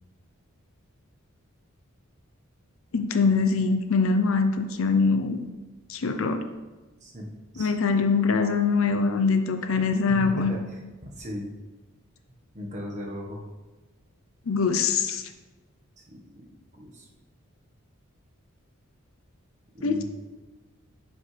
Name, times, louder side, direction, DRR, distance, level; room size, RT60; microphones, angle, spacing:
voice 1, 2.9-5.4 5.9-6.4 7.6-10.5 14.5-15.2 19.8-20.0, left 4 dB, 65° left, 7 dB, 0.6 m, -23 dB
voice 2, 7.0-7.7 10.1-10.8 11.2-11.5 12.5-13.4 16.0-16.2 16.7-17.1 19.7-20.0, equal, 35° right, -1 dB, 1.3 m, -37 dB
11.0 x 5.3 x 3.3 m, 1.2 s
head